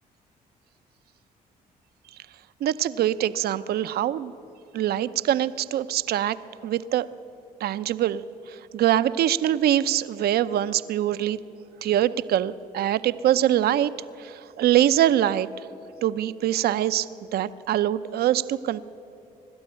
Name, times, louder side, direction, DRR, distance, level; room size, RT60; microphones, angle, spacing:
voice 1, 2.6-4.3 4.7-7.1 7.6-8.2 8.5-11.4 11.8-13.9 14.2-15.5 16.0-17.1 17.3-18.8, right 12 dB, 75° right, 13 dB, 0.7 m, -23 dB
23.5 x 12.5 x 9.8 m, 2.9 s
supercardioid pair, 65°, 16 cm